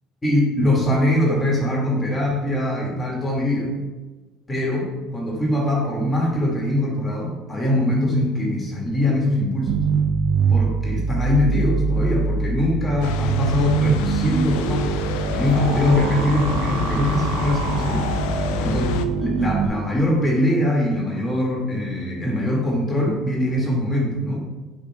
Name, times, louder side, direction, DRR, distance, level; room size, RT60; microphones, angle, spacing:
voice 1, 0.2-3.8 4.5-9.8 10.5-14.9 15.3-18.1 18.6-18.9 19.2-24.4, left 1 dB, 20° left, -2 dB, 2.2 m, -22 dB
sound 1, 9.7-19.7, right 5 dB, 75° right, 0.7 m, -24 dB
sound 2, 13.0-19.1, left 8 dB, 75° left, 0.4 m, -28 dB
11.0 x 5.4 x 2.4 m, 1.2 s
hypercardioid pair, 70°, 0 cm